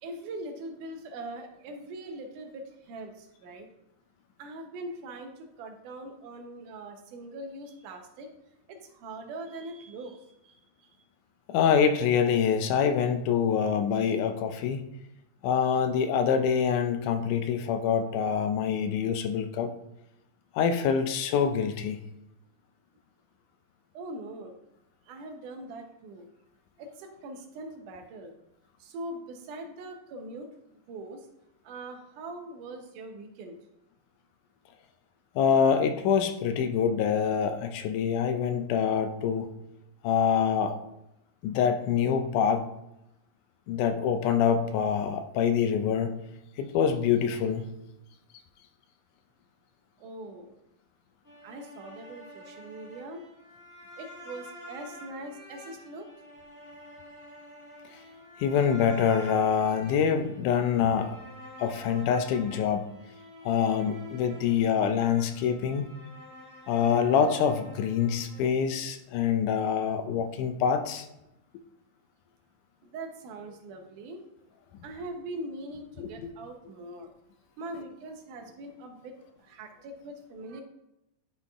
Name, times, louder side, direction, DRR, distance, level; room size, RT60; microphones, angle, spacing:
voice 1, 0.0-3.7 4.4-8.3 8.7-10.6 23.9-24.5 25.1-26.3 26.8-28.3 28.8-30.5 30.9-31.3 31.6-33.6 47.9-48.1 50.0-50.5 51.4-53.2 54.0-56.1 72.8-74.2 74.8-77.1 77.6-80.6, right 2 dB, 75° right, 4 dB, 2.4 m, -42 dB
voice 2, 11.5-14.9 15.4-19.7 20.5-22.0 35.4-39.5 40.0-40.8 41.4-42.7 43.7-46.2 46.6-47.7 58.4-61.2 61.6-62.8 63.5-65.9 66.7-71.1 76.0-76.3, left 7 dB, 80° left, 8 dB, 2.1 m, -25 dB
sound 1, 51.2-68.4, left 1 dB, 5° right, 1.6 m, -48 dB
11.0 x 4.3 x 3.5 m, 0.86 s
omnidirectional pair, 3.7 m